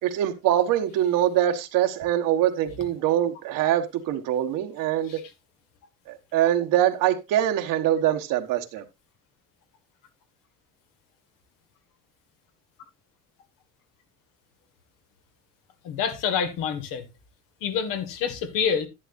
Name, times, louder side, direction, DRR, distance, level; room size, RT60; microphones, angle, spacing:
voice 1, 0.0-5.2 6.1-8.8, right 11 dB, 75° right, 1.5 m, -23 dB
voice 2, 15.8-17.1 17.6-18.9, left 7 dB, 75° left, 2.0 m, -27 dB
11.0 x 10.0 x 2.6 m
cardioid pair, 125°, 33 cm